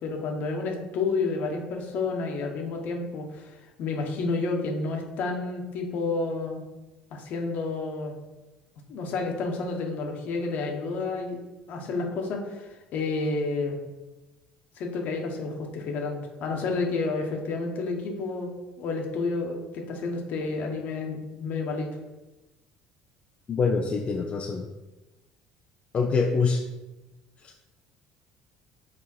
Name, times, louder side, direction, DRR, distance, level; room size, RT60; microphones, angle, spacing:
voice 1, 0.0-6.6 7.1-8.2 8.9-11.4 11.7-13.8 14.8-18.5 18.8-21.9, left 3 dB, 60° left, 2 dB, 1.3 m, -30 dB
voice 2, 23.5-24.6 25.9-26.6, left 4 dB, 40° left, 1 dB, 0.6 m, -24 dB
6.2 x 3.7 x 4.4 m, 1.1 s
supercardioid pair, 95°, 3 cm